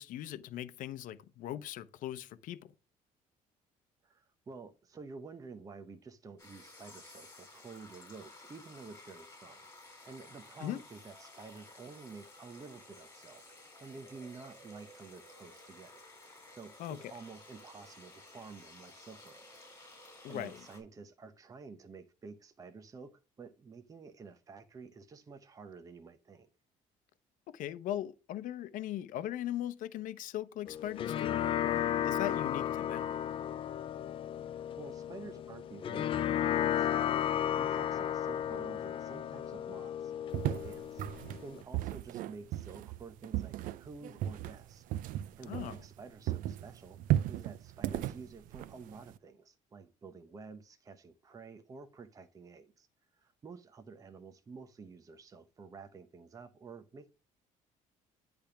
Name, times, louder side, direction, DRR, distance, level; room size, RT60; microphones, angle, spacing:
voice 1, 0.0-2.7 10.6-10.8 16.8-17.0 20.2-20.6 27.5-33.1 45.4-45.8, left 12 dB, 70° left, 0.7 m, -39 dB
voice 2, 4.0-13.4 13.8-19.6 20.0-26.5 34.4-37.1 37.5-44.9 45.4-47.0 47.3-52.9 53.1-57.1, right 4 dB, 25° right, 0.7 m, -50 dB
sound 1, 6.4-20.8, left 2 dB, 20° left, 4.3 m, -54 dB
sound 2, 30.7-41.6, left 10 dB, 40° left, 0.4 m, -34 dB
sound 3, 40.3-46.0 46.3-49.2, right 13 dB, 70° right, 0.4 m, -35 dB
10.0 x 3.5 x 5.7 m
cardioid pair, 140°, 14 cm